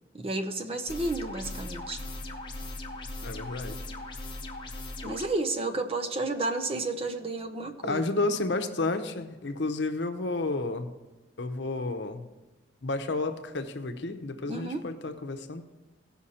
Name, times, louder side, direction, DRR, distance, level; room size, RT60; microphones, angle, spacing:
voice 1, 0.1-2.0 5.0-8.0 14.5-14.9, right 2 dB, 30° right, 5 dB, 0.7 m, -31 dB
sound 1, 0.9-5.3, left 2 dB, 25° left, 0.9 m, -39 dB
voice 2, 3.2-3.8 7.8-10.9 11.4-12.3 12.8-15.6, left 2 dB, 70° left, 8 dB, 0.8 m, -31 dB
16.5 x 5.8 x 4.3 m, 1.1 s
head